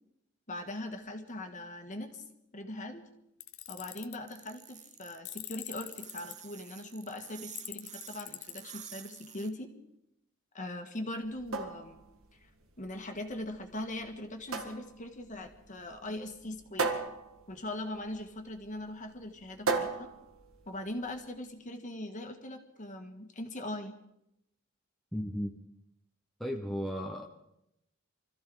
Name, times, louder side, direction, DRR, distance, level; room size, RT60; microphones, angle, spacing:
voice 1, 0.5-2.2 2.5-3.1 3.7-9.7 10.5-12.0 12.4-12.5 12.8-17.0 17.5-20.1 20.7-24.0, left 1 dB, 35° left, 5 dB, 1.7 m, -41 dB
Tools, 3.4-4.2 5.2-6.3 7.6-8.6, left 15 dB, 75° left, 0.7 m, -43 dB
sound 1, 4.3-9.5, right 10 dB, 35° right, 0.7 m, -49 dB
sound 2, 11.2-21.2, right 4 dB, 75° right, 1.7 m, -38 dB
voice 2, 25.1-25.5 26.4-27.3, equal, ahead, 1 dB, 0.9 m, -35 dB
25.0 x 14.5 x 3.9 m, 0.81 s
head